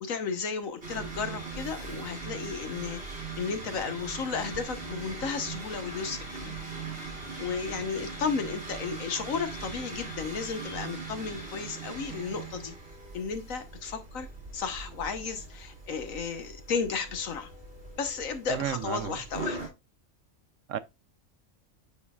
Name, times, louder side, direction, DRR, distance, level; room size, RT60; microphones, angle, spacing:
voice 1, 0.0-6.5 7.4-12.7 13.1-14.3 14.5-17.5 18.0-19.6, left 5 dB, 75° left, 1.4 m, -34 dB
sound 1, 0.8-19.7, right 3 dB, 45° right, 2.3 m, -40 dB
voice 2, 18.5-19.1 20.7-20.8, right 10 dB, 75° right, 0.9 m, -32 dB
10.5 x 4.4 x 2.3 m
omnidirectional pair, 1.4 m